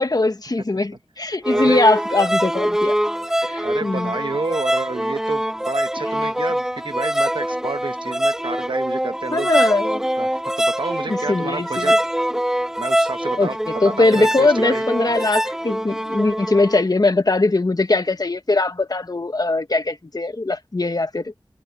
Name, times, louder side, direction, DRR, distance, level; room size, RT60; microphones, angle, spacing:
voice 1, 0.0-2.9 3.4-4.1 9.3-10.0 11.3-12.0 13.4-13.5 13.8-21.4, left 2 dB, 50° left, 1.4 m, -20 dB
sound 1, 1.4-16.8, equal, 5° right, 0.7 m, -23 dB
voice 2, 1.5-1.8 3.6-9.5 10.2-12.0 12.8-13.6 13.8-15.2, right 3 dB, 80° right, 1.1 m, -29 dB
wide cardioid pair, 60°, 8 cm